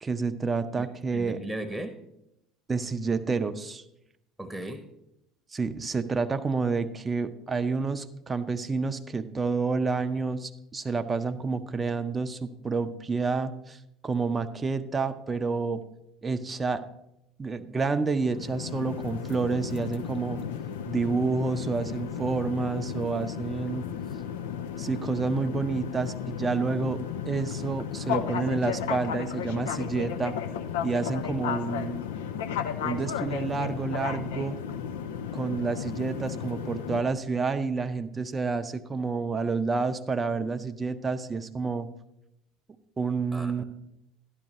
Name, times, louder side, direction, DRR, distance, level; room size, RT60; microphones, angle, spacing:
voice 1, 0.0-1.4 2.7-3.8 5.5-13.8 14.0-15.8 16.2-16.8 17.4-20.4 20.9-23.9 24.8-27.0 27.2-30.4 30.8-32.0 32.8-34.6 35.3-41.9 43.0-43.6, right 4 dB, 25° right, 10 dB, 0.6 m, -29 dB
voice 2, 1.1-2.0 4.4-4.9 43.3-43.6, right 1 dB, 5° right, 8 dB, 0.9 m, -36 dB
sound 1, 18.2-37.0, left 8 dB, 70° left, 0.5 m, -34 dB
12.0 x 10.5 x 3.1 m, 0.83 s
figure-of-eight pair, 65°, 0 cm